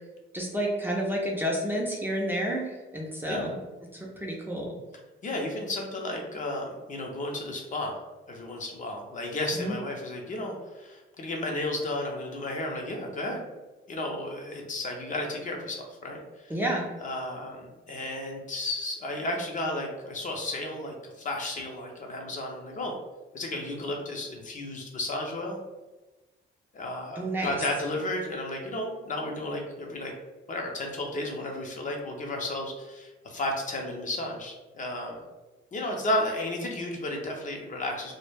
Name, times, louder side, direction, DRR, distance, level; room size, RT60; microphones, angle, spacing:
voice 1, 0.3-3.6 3.9-4.7 9.6-9.8 16.5-16.9 27.2-27.6, right 1 dB, 10° right, -3 dB, 0.4 m, -30 dB
voice 2, 5.2-8.0 8.3-13.5 13.9-16.5 17.0-22.9 23.3-25.6 26.7-30.1 30.5-35.2 35.7-38.1, left 1 dB, 40° left, 1 dB, 0.5 m, -33 dB
2.2 x 2.1 x 3.2 m, 1.2 s
cardioid pair, 110°, 21 cm